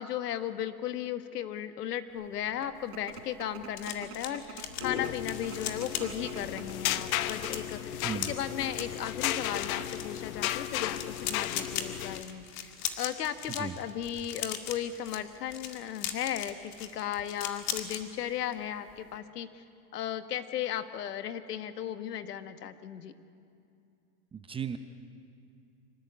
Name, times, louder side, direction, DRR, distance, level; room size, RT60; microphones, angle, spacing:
voice 1, 0.0-12.7 13.0-19.6 19.9-23.1, left 10 dB, 80° left, 10 dB, 1.5 m, -36 dB
sound 1, 2.3-7.8 8.5-8.9 9.2-9.3 9.6-10.0, right 8 dB, 70° right, 3.9 m, -46 dB
sound 2, 2.8-18.0 18.4-18.6 18.9-19.2, left 9 dB, 35° left, 2.0 m, -40 dB
sound 3, 4.7-12.2, left 12 dB, 60° left, 1.2 m, -34 dB
voice 2, 7.9-8.3 13.6-13.7 24.3-24.8, right 7 dB, 10° right, 9 dB, 0.7 m, -36 dB
25.5 x 17.0 x 8.2 m, 2.5 s
hypercardioid pair, 130°, 46 cm